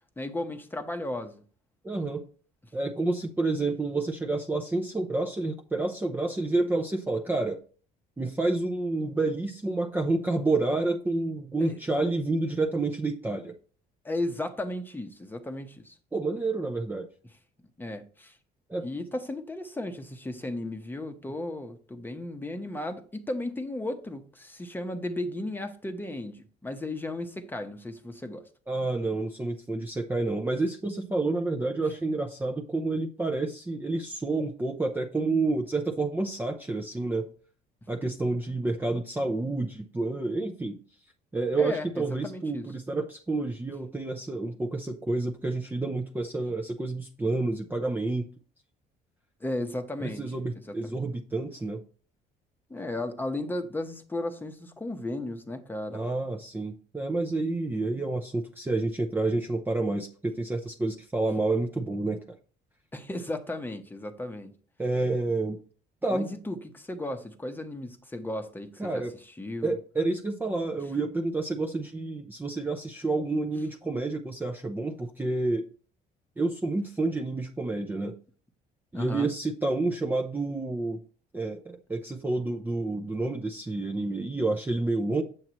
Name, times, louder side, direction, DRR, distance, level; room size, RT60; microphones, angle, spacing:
voice 1, 0.2-1.4 11.6-11.8 14.0-16.0 17.8-18.4 18.8-28.5 41.6-42.7 49.4-50.2 50.6-51.0 52.7-56.1 62.9-64.5 66.1-69.0 69.4-69.8 78.9-79.3, left 1 dB, 10° left, 0.9 m, -35 dB
voice 2, 1.8-2.2 2.7-7.6 8.2-13.5 16.1-17.1 18.7-18.9 28.7-37.3 37.9-40.8 41.3-48.3 50.0-51.8 55.9-62.4 64.8-65.6 66.0-66.3 68.8-69.1 69.6-75.6 76.4-78.1 78.9-81.0 81.3-85.2, right 2 dB, 10° right, 0.6 m, -29 dB
7.7 x 7.2 x 3.0 m
cardioid pair, 110°, 17 cm